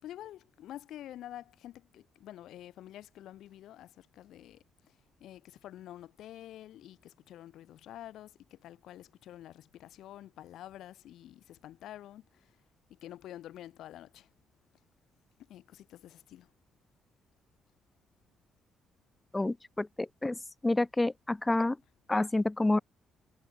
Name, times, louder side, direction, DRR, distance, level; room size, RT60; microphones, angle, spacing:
voice 1, 0.0-4.9 5.2-12.5 12.9-14.3 15.5-16.5, left 12 dB, 80° left, 4.3 m, -48 dB
voice 2, 19.3-19.9 20.2-20.4 20.6-21.8 22.1-22.8, left 2 dB, 15° left, 0.4 m, -28 dB
cardioid pair, 90°, 0 cm